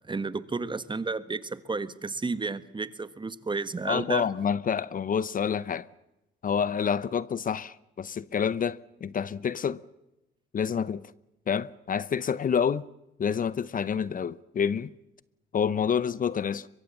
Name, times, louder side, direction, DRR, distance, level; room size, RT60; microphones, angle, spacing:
voice 1, 0.0-4.3, right 3 dB, 25° right, 1.4 m, -32 dB
voice 2, 3.9-5.9 6.4-9.8 10.5-11.0 11.5-12.8 13.2-14.9 15.5-16.7, left 7 dB, 45° left, 0.7 m, -28 dB
23.0 x 22.5 x 7.2 m
cardioid pair, 90°, 20 cm